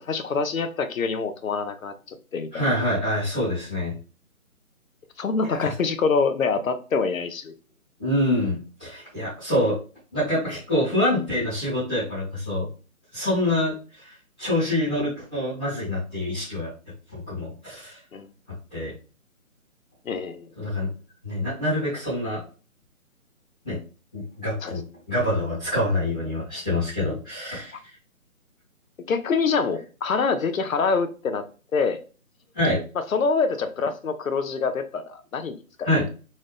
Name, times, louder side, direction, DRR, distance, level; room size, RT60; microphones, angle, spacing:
voice 1, 0.0-2.6 5.2-7.5 18.1-18.3 20.1-20.5 24.6-24.7 29.1-31.4 31.7-32.0 32.9-35.9, left 4 dB, 70° left, 0.7 m, -25 dB
voice 2, 2.5-3.9 5.6-5.7 8.0-9.8 10.1-12.7 13.1-14.1 14.4-16.7 17.3-18.0 18.7-18.9 20.5-20.9 21.2-22.4 23.6-23.8 24.1-27.7 32.5-32.8 35.8-36.0, left 1 dB, 5° left, 0.8 m, -26 dB
4.1 x 2.5 x 3.3 m
hypercardioid pair, 165°, 43 cm